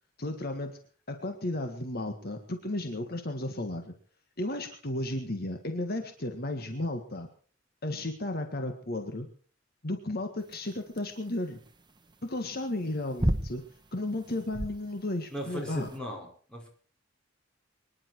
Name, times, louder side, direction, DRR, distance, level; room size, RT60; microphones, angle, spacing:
voice 1, 0.2-0.8 1.1-3.9 4.4-7.3 7.8-9.3 9.8-11.6 12.2-13.6 13.9-15.9, left 1 dB, 50° left, 6 dB, 1.8 m, -34 dB
sound 1, 10.4-16.0, right 1 dB, 25° right, 1.2 m, -34 dB
voice 2, 15.3-16.7, equal, 5° left, -2 dB, 5.5 m, -38 dB
24.0 x 11.0 x 4.6 m, 0.43 s
head